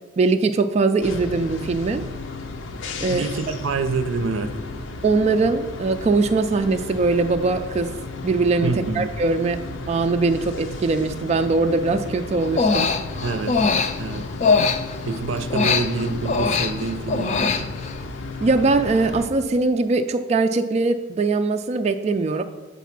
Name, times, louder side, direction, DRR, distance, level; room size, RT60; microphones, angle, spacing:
voice 1, 0.2-2.0 3.0-3.2 5.0-7.9 8.2-9.6 9.9-12.9 18.4-22.4, right 3 dB, 35° right, 6 dB, 0.3 m, -21 dB
sound 1, 1.0-19.3, left 3 dB, 70° left, 0.7 m, -34 dB
voice 2, 3.0-4.5 8.6-9.1 13.2-13.6 13.9-14.2 15.1-17.7, right 4 dB, 80° right, 9 dB, 0.6 m, -26 dB
Human voice, 12.4-15.1 15.5-18.0, left 4 dB, 35° left, 0.4 m, -22 dB
8.2 x 4.0 x 5.8 m, 1.2 s
head